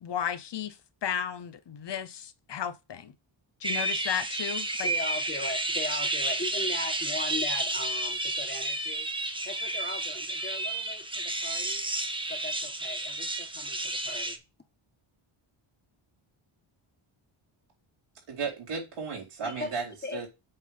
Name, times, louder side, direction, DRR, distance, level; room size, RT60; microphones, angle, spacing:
voice 1, 0.0-0.7 1.0-3.1 3.6-4.9, left 9 dB, 55° left, 0.8 m, -34 dB
sound 1, 3.6-14.4, right 2 dB, 10° right, 0.9 m, -31 dB
voice 2, 4.8-9.1 9.4-11.8 12.3-14.4 19.4-19.7 20.0-20.3, left 2 dB, 20° left, 1.5 m, -38 dB
voice 3, 18.3-20.3, right 5 dB, 85° right, 4.2 m, -35 dB
8.1 x 3.7 x 5.5 m
wide cardioid pair, 110°, 50 cm